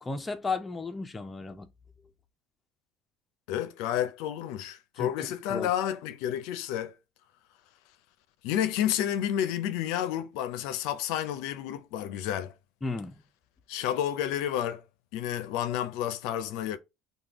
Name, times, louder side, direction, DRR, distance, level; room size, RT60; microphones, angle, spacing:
voice 1, 0.0-1.7 5.0-5.1 5.5-5.7 12.8-13.2, left 4 dB, 15° left, 0.4 m, -34 dB
voice 2, 3.5-6.9 8.4-12.5 13.7-14.8 15.1-16.8, left 11 dB, 75° left, 0.4 m, -30 dB
3.4 x 2.2 x 2.8 m
cardioid pair, 120°, 0 cm